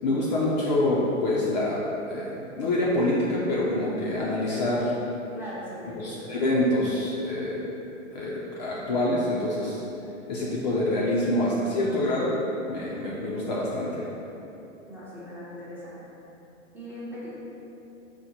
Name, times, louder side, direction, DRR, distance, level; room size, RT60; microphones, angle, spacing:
voice 1, 0.0-4.9 6.0-7.6 8.1-9.8 10.3-12.4 12.7-14.1, left 1 dB, 35° left, -5 dB, 0.5 m, -26 dB
voice 2, 5.3-6.3 14.9-16.0 16.7-17.3, equal, 5° right, -10 dB, 0.6 m, -40 dB
4.3 x 2.1 x 4.2 m, 3.0 s
hypercardioid pair, 125°, 39 cm